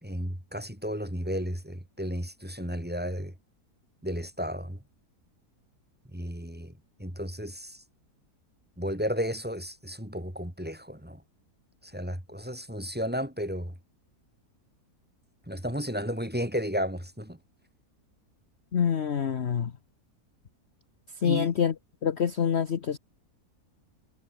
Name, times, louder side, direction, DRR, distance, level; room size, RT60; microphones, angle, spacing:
voice 1, 0.0-3.3 4.0-4.8 6.1-7.8 8.8-11.2 11.8-13.7 15.5-17.4 21.2-21.5, equal, 5° right, 3.5 m, -33 dB
voice 2, 18.7-19.7 21.2-21.7 22.0-23.0, left 7 dB, 45° left, 1.2 m, -26 dB
omnidirectional pair, 1.7 m